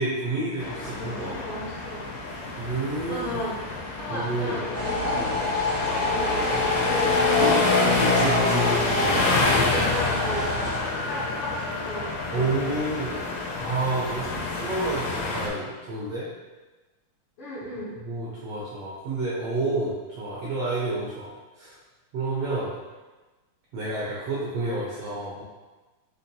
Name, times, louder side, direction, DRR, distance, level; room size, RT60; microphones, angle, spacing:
voice 1, 0.0-1.3 2.6-3.3 4.1-4.6 5.2-5.3 8.0-8.7 12.3-13.1 13.6-16.3 18.0-21.7 22.1-22.7 23.7-25.4, right 2 dB, 85° right, -7 dB, 1.4 m, -29 dB
sound 1, 0.6-15.5, left 3 dB, 80° left, 1.5 m, -27 dB
voice 2, 0.7-2.0 3.1-3.6 4.0-7.5 8.3-8.7 9.0-10.5 10.9-12.5 17.4-17.9, left 1 dB, 65° left, -11 dB, 1.4 m, -35 dB
Empty Toilet Flush, 4.7-10.8, left 1 dB, 55° right, 1.4 m, -28 dB
5.6 x 2.6 x 2.2 m, 1.2 s
omnidirectional pair, 3.5 m